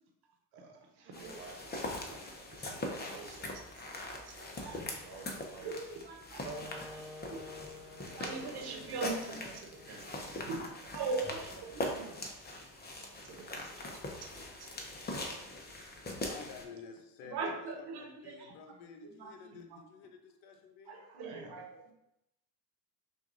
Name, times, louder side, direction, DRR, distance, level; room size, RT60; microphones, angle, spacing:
voice 1, 0.5-0.8 1.2-5.7 6.4-7.1 8.1-12.3 13.0-14.0 21.2-21.6, right 4 dB, 80° right, 1 dB, 1.1 m, -53 dB
sound 1, 1.1-16.6, left 1 dB, 20° left, 0.8 m, -42 dB
voice 2, 1.1-1.4 4.6-4.8 5.6-6.5 6.9-7.0 7.3-7.4 8.2-9.6 10.5-10.6 10.9-12.1 17.2-18.5 19.0-19.8 20.9-21.7, right 4 dB, 55° right, 2 dB, 1.1 m, -40 dB
Wind instrument woodwind instrument, 6.4-11.5, left 1 dB, 10° right, 1.4 m, -50 dB
voice 3, 16.1-21.0, left 5 dB, 75° left, 5 dB, 0.8 m, -51 dB
5.9 x 2.6 x 2.6 m, 0.86 s
supercardioid pair, 80°, 48 cm